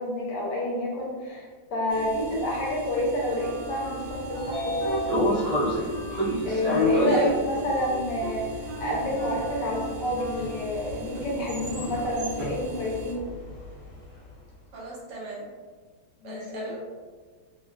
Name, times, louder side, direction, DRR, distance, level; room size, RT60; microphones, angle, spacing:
voice 1, 0.0-5.5 6.5-8.5 8.8-13.3 16.2-16.7, left 1 dB, 70° left, -4 dB, 1.2 m, -29 dB
sound 1, 1.9-13.1, equal, 85° right, 0.7 m, -40 dB
Wind instrument woodwind instrument, 3.3-5.0 5.3-10.7, right 2 dB, 50° left, 0.6 m, -39 dB
Train / Sliding door, 3.9-14.1, equal, 45° right, 1.3 m, -30 dB
voice 2, 7.1-7.6 14.7-15.5 16.2-16.8, right 3 dB, 65° right, -6 dB, 1.3 m, -37 dB
3.1 x 2.3 x 2.2 m, 1.5 s
omnidirectional pair, 2.1 m